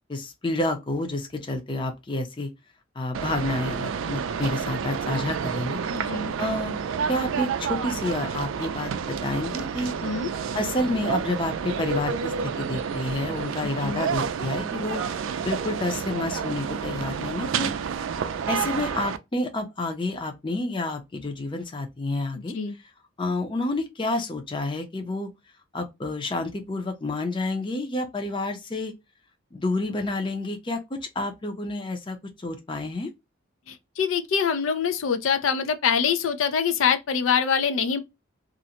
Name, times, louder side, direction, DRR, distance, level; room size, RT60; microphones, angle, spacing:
voice 1, 0.1-2.5 3.0-5.8 6.2-6.7 7.1-8.9 9.2-10.0 10.5-17.7 18.5-22.6 23.2-25.3 25.7-28.9 29.5-33.1, left 2 dB, 25° left, 0.5 m, -29 dB
sound 1, 3.1-19.2, right 6 dB, 80° right, 0.3 m, -29 dB
voice 2, 5.9-6.3 10.0-10.3 13.8-14.0 22.5-22.8 33.7-38.0, left 7 dB, 85° left, 0.4 m, -24 dB
2.5 x 2.1 x 2.8 m
head